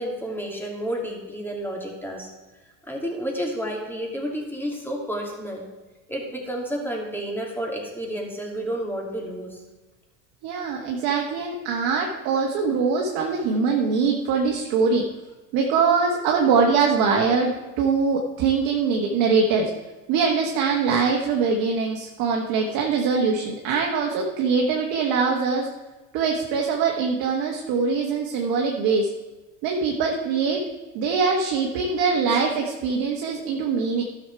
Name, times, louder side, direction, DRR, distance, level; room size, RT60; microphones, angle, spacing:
voice 1, 0.0-2.3 2.8-5.7 6.1-9.6 22.6-22.8, equal, 5° left, 0 dB, 2.7 m, -31 dB
voice 2, 10.4-15.0 15.5-19.7 20.1-25.7 26.1-29.1 29.6-30.6 30.9-34.0, right 5 dB, 60° right, 0 dB, 1.3 m, -23 dB
12.0 x 6.5 x 4.7 m, 1.2 s
hypercardioid pair, 80°, 40 cm